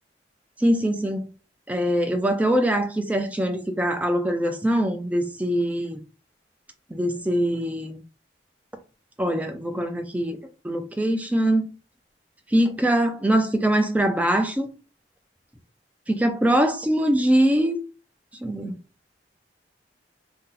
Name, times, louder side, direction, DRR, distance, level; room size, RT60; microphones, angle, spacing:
voice 1, 0.6-1.3 1.7-6.0 6.9-8.0 9.2-10.4 10.6-11.6 12.5-14.7 16.1-17.8 18.4-18.7, right 1 dB, 10° right, 0.4 m, -23 dB
2.7 x 2.2 x 3.8 m
head